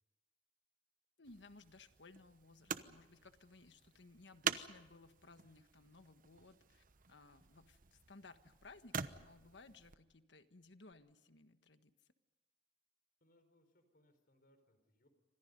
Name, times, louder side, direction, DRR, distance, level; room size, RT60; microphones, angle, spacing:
voice 1, 1.2-11.9, left 3 dB, 90° left, 9 dB, 1.5 m, -60 dB
sound 1, 1.2-10.0 10.9-11.0, right 7 dB, 50° right, 1.0 m, -47 dB
voice 2, 13.2-15.1, left 1 dB, 60° left, 9 dB, 4.7 m, -72 dB
29.0 x 25.5 x 5.4 m, 1.1 s
head